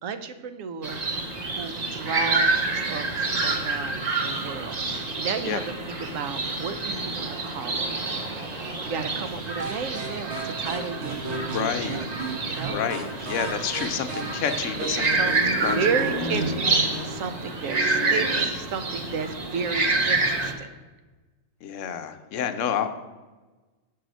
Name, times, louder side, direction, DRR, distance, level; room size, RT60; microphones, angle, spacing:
voice 1, 0.0-1.0 1.5-5.6 6.0-7.9 8.8-12.1 12.4-12.8 15.1-20.7 22.6-22.8, right 5 dB, 85° right, 10 dB, 1.0 m, -33 dB
sound 1, 0.8-20.5, right 3 dB, 40° right, 0.8 m, -28 dB
sound 2, 9.6-17.2, right 2 dB, 60° right, 1.3 m, -35 dB
voice 2, 11.4-12.0 12.6-15.3 15.6-15.8 16.1-16.2 16.7-17.1 21.6-22.9, left 8 dB, 70° left, 9 dB, 0.9 m, -29 dB
6.4 x 4.7 x 6.1 m, 1.2 s
omnidirectional pair, 1.4 m